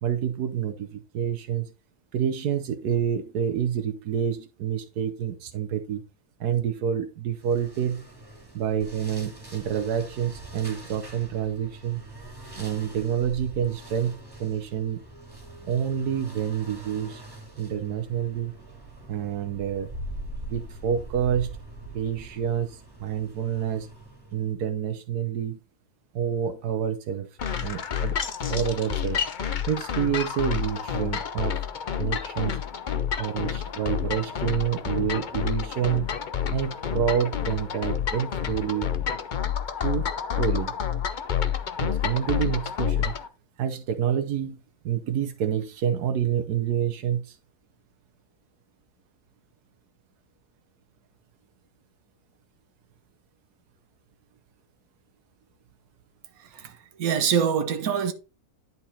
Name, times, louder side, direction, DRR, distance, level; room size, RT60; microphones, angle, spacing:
voice 1, 0.0-1.7 2.1-6.0 6.4-8.0 8.5-12.0 12.6-15.0 15.6-17.2 17.6-18.5 19.1-19.9 20.5-21.5 21.9-23.9 24.3-25.6 26.1-27.3 27.6-28.2 28.5-29.2 29.7-31.6 32.0-32.6 33.2-36.1 36.5-38.9 39.8-40.1 40.4-40.8 41.8-43.2 43.6-44.6 44.8-47.4, right 8 dB, 85° right, 1.4 m, -28 dB
sound 1, 7.4-24.5, right 1 dB, 15° right, 2.3 m, -43 dB
sound 2, 27.4-43.3, left 8 dB, 50° left, 0.6 m, -29 dB
voice 2, 56.4-58.1, right 7 dB, 70° right, 1.5 m, -25 dB
10.5 x 4.2 x 4.2 m
omnidirectional pair, 1.6 m